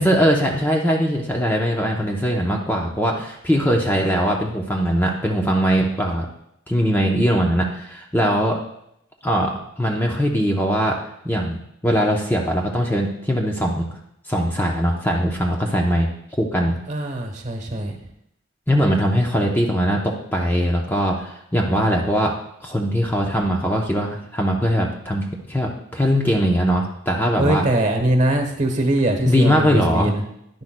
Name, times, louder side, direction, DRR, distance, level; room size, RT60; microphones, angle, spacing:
voice 1, 0.0-6.3 6.7-8.6 9.2-11.0 11.2-13.8 14.3-16.1 16.4-16.8 18.7-22.3 22.6-27.7 29.3-30.1, equal, 10° left, 0 dB, 0.7 m, -21 dB
voice 2, 16.9-17.9 27.4-30.2, right 1 dB, 35° right, 5 dB, 1.2 m, -21 dB
10.5 x 10.0 x 2.2 m, 0.77 s
head